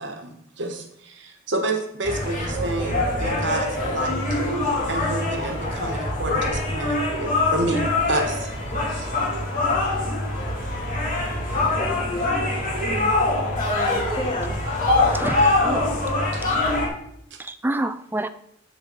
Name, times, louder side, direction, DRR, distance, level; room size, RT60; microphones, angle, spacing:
voice 1, 0.0-4.4 4.9-8.5 8.9-9.1 16.3-16.4 17.3-17.4, right 2 dB, 65° right, 5 dB, 1.4 m, -29 dB
sound 1, 2.0-16.9, left 2 dB, 40° left, 3.1 m, -24 dB
voice 2, 11.4-12.3 13.5-14.6, left 1 dB, 25° left, 1 dB, 1.3 m, -31 dB
voice 3, 15.0-15.8 17.4-18.3, right 1 dB, 10° right, 11 dB, 0.4 m, -28 dB
7.7 x 7.4 x 4.1 m, 0.72 s
head